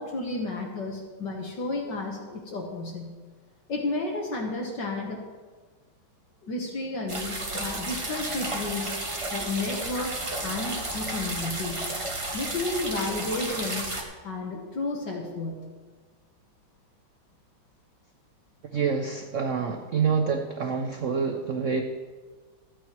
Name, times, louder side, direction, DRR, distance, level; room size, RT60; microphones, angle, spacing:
voice 1, 0.0-3.2 3.7-5.2 6.4-8.9 9.3-11.9 12.3-13.9 14.2-15.6, left 2 dB, 60° left, 1 dB, 1.9 m, -32 dB
sound 1, 7.1-14.0, right 2 dB, 20° right, 1.0 m, -32 dB
voice 2, 18.7-21.8, right 5 dB, 85° right, 5 dB, 0.6 m, -27 dB
14.0 x 8.8 x 4.5 m, 1.4 s
omnidirectional pair, 2.3 m